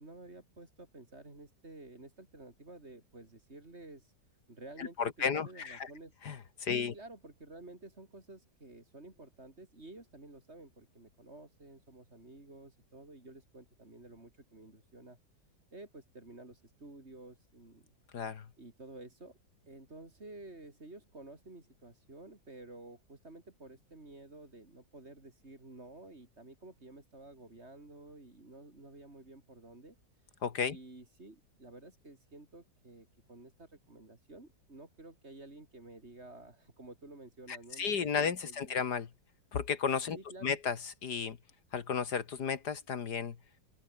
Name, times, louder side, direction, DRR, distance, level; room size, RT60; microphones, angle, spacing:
voice 1, 0.0-4.1 4.5-5.1 5.3-6.1 6.8-15.2 15.7-18.0 18.6-19.4 19.7-30.0 30.7-38.8 40.1-40.6, right 2 dB, 35° right, 4.4 m, -52 dB
voice 2, 4.8-5.9 6.2-6.9 18.1-18.5 30.4-30.8 37.5-39.1 39.5-40.2 40.4-41.4 41.7-43.4, left 6 dB, 65° left, 2.0 m, -33 dB
open air
omnidirectional pair, 2.0 m